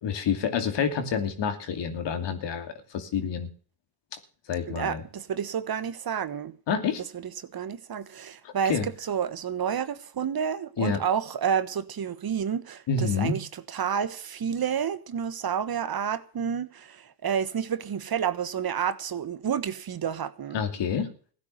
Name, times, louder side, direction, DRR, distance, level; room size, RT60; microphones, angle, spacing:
voice 1, 0.0-3.5 4.5-5.0 6.7-7.0 8.4-8.9 10.8-11.0 12.9-13.4 20.5-21.1, left 6 dB, 75° left, 2.7 m, -28 dB
voice 2, 4.7-6.6 7.1-20.6, right 8 dB, 55° right, 1.4 m, -30 dB
16.0 x 9.8 x 6.6 m
supercardioid pair, 55°, 44 cm